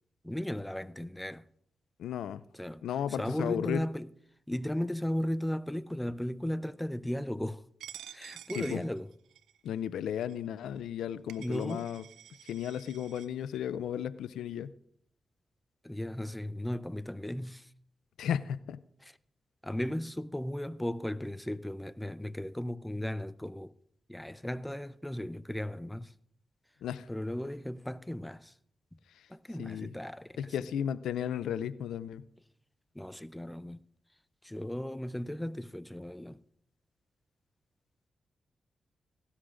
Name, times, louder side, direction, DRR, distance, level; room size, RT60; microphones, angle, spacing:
voice 1, 0.2-1.5 2.5-4.1 4.5-7.7 8.1-9.1 11.4-11.9 15.8-17.7 19.0-19.1 19.6-23.7 24.1-26.1 27.1-28.5 28.9-29.0 29.3-30.5 32.9-33.8 34.4-36.4, left 1 dB, 10° left, 0.5 m, -36 dB
voice 2, 2.0-2.4 2.8-3.8 8.5-8.8 9.6-12.0 12.4-14.7 18.2-18.8 26.8-27.1 29.6-29.9 30.4-32.2, left 9 dB, 85° left, 0.4 m, -34 dB
Coin (dropping), 7.8-9.6 10.2-10.3 11.0-11.1 11.3-13.3, right 11 dB, 90° right, 0.4 m, -49 dB
17.5 x 12.5 x 2.5 m
supercardioid pair, 45°, 0 cm